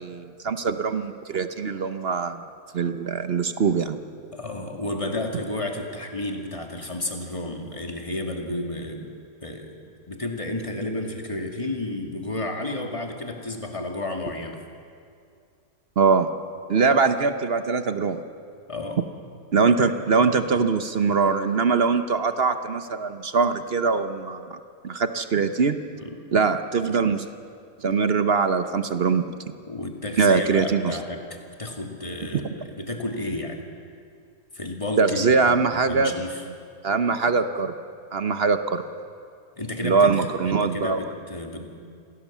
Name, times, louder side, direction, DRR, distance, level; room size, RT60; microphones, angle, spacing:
voice 1, 0.0-2.4 2.7-4.0 16.0-16.3 16.7-18.2 19.5-24.6 24.8-25.8 26.3-27.3 27.8-29.3 30.2-31.0 35.0-36.1 36.8-37.7 38.1-38.8 39.8-41.0, right 5 dB, 45° right, 9 dB, 0.9 m, -22 dB
voice 2, 4.3-9.1 9.4-9.8 10.1-14.6 18.7-19.0 26.0-26.2 29.7-33.6 34.5-36.4 39.6-41.7, left 1 dB, 20° left, 3 dB, 2.2 m, -32 dB
26.5 x 17.0 x 7.4 m, 2.3 s
omnidirectional pair, 1.7 m